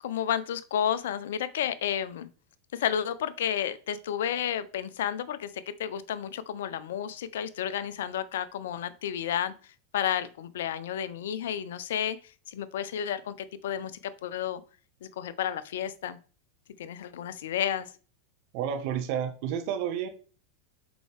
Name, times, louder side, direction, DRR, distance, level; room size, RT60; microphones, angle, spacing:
voice 1, 0.0-2.3 2.7-5.5 5.8-9.5 9.9-12.2 12.5-14.6 15.0-16.2 16.8-17.9, left 9 dB, 75° left, 14 dB, 0.6 m, -31 dB
voice 2, 18.5-20.1, right 9 dB, 60° right, 7 dB, 1.0 m, -30 dB
6.1 x 4.7 x 3.4 m, 0.37 s
hypercardioid pair, 95°, 0 cm